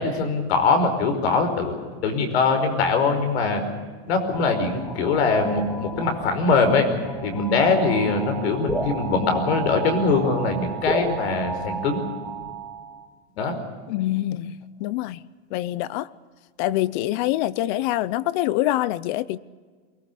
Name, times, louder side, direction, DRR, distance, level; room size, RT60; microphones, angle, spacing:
voice 1, 0.0-1.7 2.0-3.6 4.1-6.9 7.2-12.0 13.4-13.6, left 4 dB, 75° left, 5.3 m, -22 dB
sound 1, 4.3-13.0, right 3 dB, 5° left, 2.1 m, -33 dB
voice 2, 13.9-15.2 15.5-16.1 16.6-19.4, left 15 dB, 45° left, 0.6 m, -25 dB
23.5 x 18.5 x 8.4 m
supercardioid pair, 165°, 32 cm